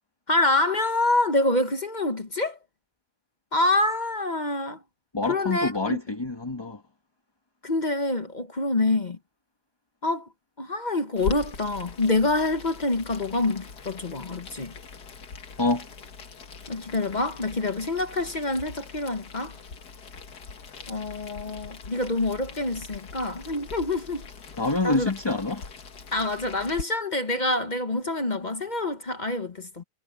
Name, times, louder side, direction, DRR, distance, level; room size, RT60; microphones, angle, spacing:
voice 1, 0.3-2.6 3.5-4.8 5.3-6.0 7.6-9.2 10.0-10.3 10.6-14.7 16.7-19.5 20.9-24.2 24.8-25.1 26.1-29.8, left 2 dB, 30° left, 0.9 m, -26 dB
voice 2, 5.1-6.8 15.6-15.9 24.6-25.7, left 2 dB, 15° left, 1.3 m, -26 dB
Boiling, 11.2-26.8, left 5 dB, 60° left, 2.2 m, -41 dB
omnidirectional pair, 2.0 m